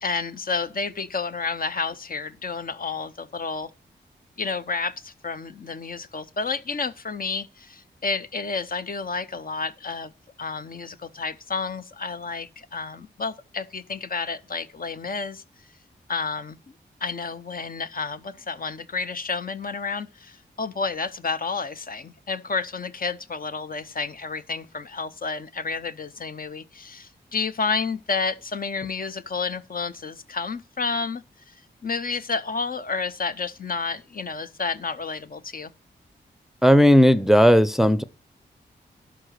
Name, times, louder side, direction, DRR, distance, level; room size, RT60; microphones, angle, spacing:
voice 1, 0.0-3.7 4.4-10.1 10.4-15.4 16.1-16.6 17.0-31.5 31.8-35.7, left 4 dB, 45° left, 0.7 m, -30 dB
voice 2, 36.6-38.0, equal, ahead, 0.6 m, -15 dB
11.5 x 3.9 x 6.4 m
cardioid pair, 40°, 20 cm